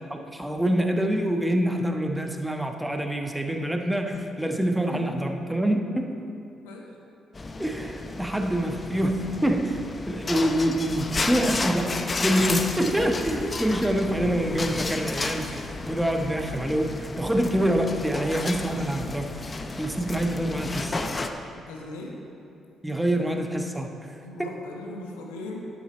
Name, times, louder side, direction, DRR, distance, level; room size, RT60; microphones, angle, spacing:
voice 1, 0.0-6.2 7.6-21.0 22.8-24.1 24.4-24.5, right 1 dB, 5° right, 4 dB, 1.1 m, -26 dB
sound 1, 7.3-21.3, left 3 dB, 35° left, 0.7 m, -32 dB
voice 2, 21.7-22.2 24.2-25.7, left 2 dB, 85° left, 0 dB, 1.2 m, -39 dB
11.0 x 8.1 x 4.4 m, 2.6 s
hypercardioid pair, 50°, 0 cm